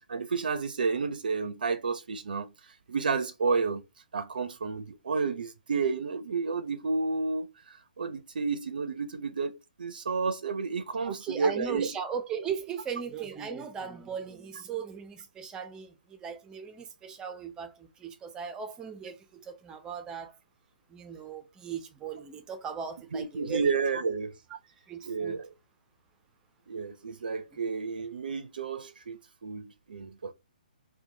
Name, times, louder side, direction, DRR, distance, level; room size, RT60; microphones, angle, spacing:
voice 1, 0.1-2.5 2.9-3.8 4.1-9.5 9.8-11.9 23.1-24.4 25.0-25.5 26.7-30.3, right 4 dB, 70° right, 0.5 m, -31 dB
voice 2, 11.0-20.3 20.9-23.7 24.9-25.4, right 7 dB, 15° right, 0.6 m, -38 dB
4.4 x 2.2 x 2.7 m
hypercardioid pair, 140°, 5 cm